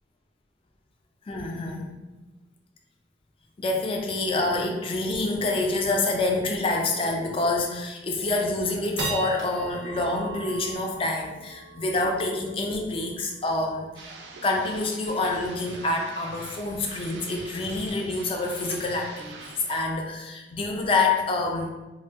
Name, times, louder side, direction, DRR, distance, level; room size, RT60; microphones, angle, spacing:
voice 1, 1.3-1.9 3.6-14.1 14.4-21.7, left 2 dB, 30° left, 1 dB, 0.3 m, -27 dB
sound 1, 6.4-6.6 7.1-7.2 7.7-8.1 8.5-15.1, right 3 dB, 80° right, 0.8 m, -39 dB
sound 2, 13.9-19.9, right 4 dB, 65° right, 0.4 m, -44 dB
2.6 x 2.1 x 3.4 m, 1.1 s
head